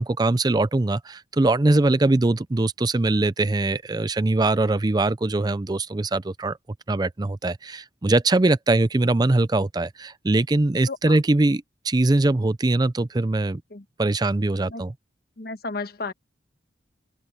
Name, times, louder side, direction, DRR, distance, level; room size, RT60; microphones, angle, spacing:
voice 1, 0.0-6.6 6.9-13.6 14.0-14.9, right 2 dB, 20° right, 0.5 m, -22 dB
voice 2, 10.9-11.2 13.7-13.8 14.7-14.8 15.4-16.1, left 3 dB, 60° left, 1.3 m, -33 dB
head